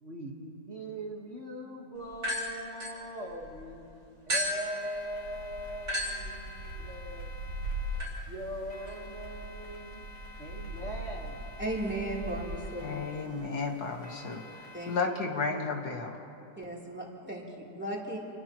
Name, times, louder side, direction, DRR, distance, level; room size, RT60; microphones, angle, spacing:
voice 1, 0.0-3.9 4.3-7.3 8.3-10.1 10.4-11.4, equal, 40° right, -1 dB, 1.8 m, -41 dB
sound 1, 2.1-3.6 4.3-12.6, equal, 80° right, 5.9 m, -37 dB
sound 2, 4.6-15.0, left 1 dB, 20° left, 4.5 m, -51 dB
voice 2, 11.6-12.9 14.7-15.1 16.6-18.2, right 1 dB, 5° right, -5 dB, 3.3 m, -36 dB
voice 3, 12.8-16.2, left 4 dB, 60° left, 2 dB, 1.9 m, -33 dB
29.5 x 29.0 x 3.1 m, 2.7 s
omnidirectional pair, 1.9 m